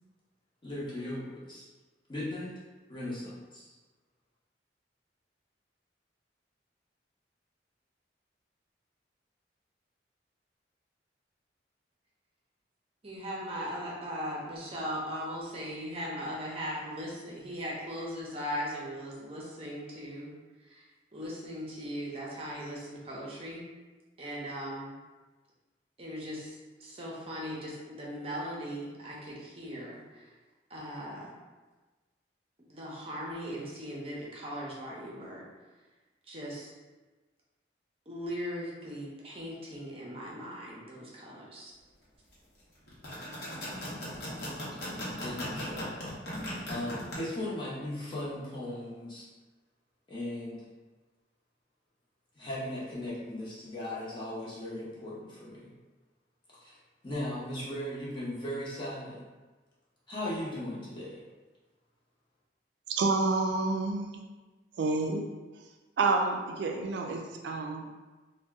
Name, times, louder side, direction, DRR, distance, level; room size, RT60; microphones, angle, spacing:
voice 1, 0.6-1.6 2.1-2.5 2.9-3.7 45.2-49.3 50.1-50.7 52.4-55.7 56.6-56.8 57.0-59.2 60.1-61.2, left 1 dB, 25° left, -8 dB, 0.8 m, -38 dB
voice 2, 13.0-20.3 20.6-23.6 24.2-24.9 26.0-30.3 30.7-31.3 32.7-35.5 36.3-36.7 38.1-41.7, equal, 30° right, -4 dB, 0.6 m, -39 dB
sound 1, 42.9-47.2, left 1 dB, 60° left, 0.9 m, -37 dB
voice 3, 63.0-64.2 64.8-65.2 66.0-67.9, right 3 dB, 70° right, 2 dB, 0.3 m, -29 dB
2.6 x 2.1 x 3.4 m, 1.3 s
head